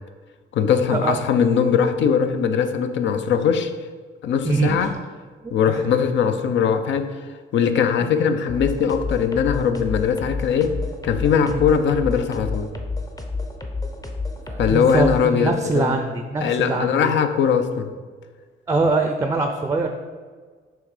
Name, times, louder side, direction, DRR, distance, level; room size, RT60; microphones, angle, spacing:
voice 1, 0.5-3.7 4.2-5.0 5.5-7.3 7.5-10.7 11.0-12.7 14.6-16.0 16.4-17.9, left 7 dB, 70° left, 9 dB, 0.6 m, -20 dB
voice 2, 4.4-5.0 5.4-5.9 8.0-8.1 11.4-11.6 14.5-17.1 18.7-19.9, right 3 dB, 15° right, 5 dB, 0.5 m, -23 dB
sound 1, 8.5-15.3, left 3 dB, 20° left, 0.7 m, -30 dB
6.1 x 3.6 x 4.9 m, 1.5 s
cardioid pair, 90°, 20 cm